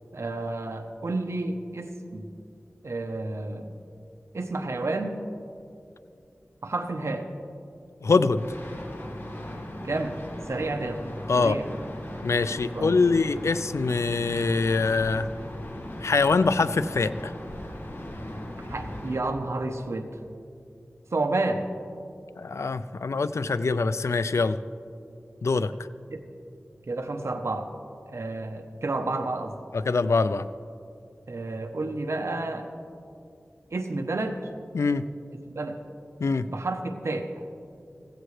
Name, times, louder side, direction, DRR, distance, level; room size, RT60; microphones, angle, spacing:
voice 1, 0.1-2.3 2.8-3.8 4.3-5.2 6.6-7.2 9.8-10.2 10.5-11.0 11.4-11.7 12.7-13.0 18.7-20.1 21.1-21.6 26.1-26.2 26.9-27.7 28.1-29.5 31.3-32.7 33.7-34.4 35.5-35.8 36.5-37.4, right 2 dB, 80° right, 6 dB, 0.9 m, -30 dB
voice 2, 8.0-8.5 11.3-11.6 12.2-15.3 16.0-17.3 22.4-24.6 25.4-25.7 29.7-30.4 34.7-35.0 36.2-36.4, left 4 dB, 85° left, 13 dB, 0.4 m, -24 dB
sound 1, 8.3-19.2, left 1 dB, 50° left, 1.8 m, -38 dB
15.5 x 15.5 x 3.3 m, 2.5 s
wide cardioid pair, 50°, 5 cm